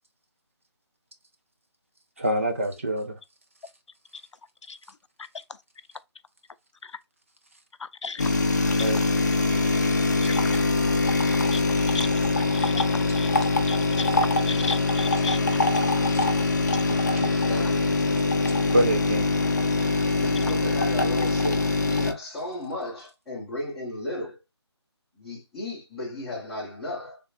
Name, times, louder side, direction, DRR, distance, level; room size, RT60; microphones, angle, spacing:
voice 1, 2.2-3.2 8.8-9.0 16.1-16.2 17.2-17.3 18.7-19.3, right 1 dB, 30° right, 0.5 m, -25 dB
sound 1, 8.2-22.1, left 3 dB, 40° left, 0.5 m, -23 dB
voice 2, 10.2-10.6 11.9-12.1 13.2-13.3 13.7-14.1 14.5-15.4, left 4 dB, 90° left, 0.5 m, -33 dB
voice 3, 17.3-18.3 20.2-24.4 25.2-27.2, left 1 dB, ahead, 0.7 m, -34 dB
3.7 x 3.3 x 2.5 m
figure-of-eight pair, 170°, 15 cm